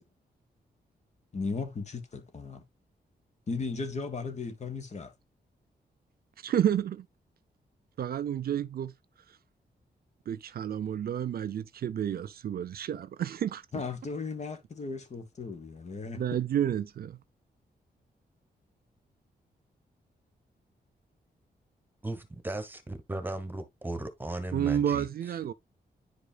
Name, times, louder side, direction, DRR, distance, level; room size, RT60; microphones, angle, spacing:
voice 1, 1.3-2.6 3.5-5.1 13.7-16.4, left 4 dB, 45° left, 1.4 m, -36 dB
voice 2, 6.4-7.1 8.0-8.9 10.3-13.6 16.1-17.2 24.5-25.5, right 10 dB, 65° right, 0.4 m, -30 dB
voice 3, 22.0-25.1, right 2 dB, 10° right, 1.2 m, -36 dB
10.5 x 5.0 x 2.3 m
wide cardioid pair, 120°, 17 cm